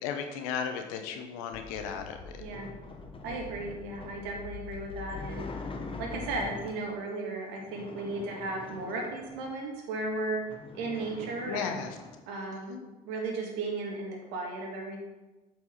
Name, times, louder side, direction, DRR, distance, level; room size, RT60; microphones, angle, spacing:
voice 1, 0.0-2.4 11.4-12.0 12.5-12.8, left 7 dB, 80° left, 6 dB, 1.0 m, -35 dB
sound 1, 1.5-6.5, left 5 dB, 60° left, 2.0 m, -45 dB
sound 2, 2.1-7.0 7.5-9.6 10.1-10.2 10.4-12.2, left 3 dB, 30° left, 1.2 m, -45 dB
voice 2, 3.2-5.5 6.0-10.4 10.7-11.8 12.3-15.0, right 2 dB, 75° right, 1 dB, 2.0 m, -35 dB
8.3 x 4.8 x 5.7 m, 1.1 s
hypercardioid pair, 65°, 18 cm